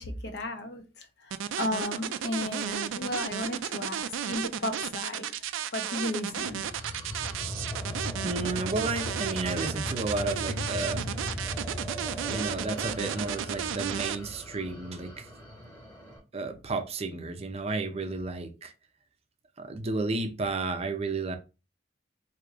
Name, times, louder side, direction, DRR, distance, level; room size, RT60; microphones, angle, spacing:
voice 1, 0.0-5.3 5.7-6.7, left 1 dB, 60° left, 0.8 m, -34 dB
sound 1, 1.3-14.2, right 9 dB, 85° right, 0.4 m, -33 dB
sound 2, 6.4-16.2, left 1 dB, 20° left, 1.5 m, -38 dB
voice 2, 8.2-11.1 12.3-15.3 16.3-18.7 19.6-21.4, right 3 dB, 35° right, 0.5 m, -32 dB
4.7 x 2.8 x 2.4 m
head